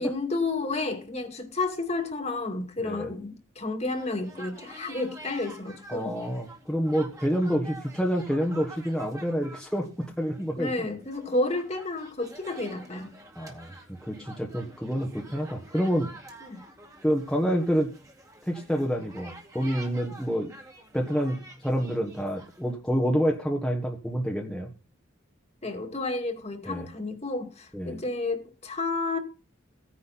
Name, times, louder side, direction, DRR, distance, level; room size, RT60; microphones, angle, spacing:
voice 1, 0.0-6.2 10.6-13.1 16.4-16.6 25.6-29.2, left 2 dB, 35° left, 2.2 m, -31 dB
sound 1, 3.9-22.7, right 2 dB, 15° right, 2.2 m, -48 dB
voice 2, 5.9-10.7 13.3-13.7 14.1-16.1 17.0-17.9 18.4-20.5 20.9-24.7 26.6-26.9 27.7-27.9, equal, 5° left, 1.4 m, -28 dB
16.0 x 10.0 x 4.2 m
head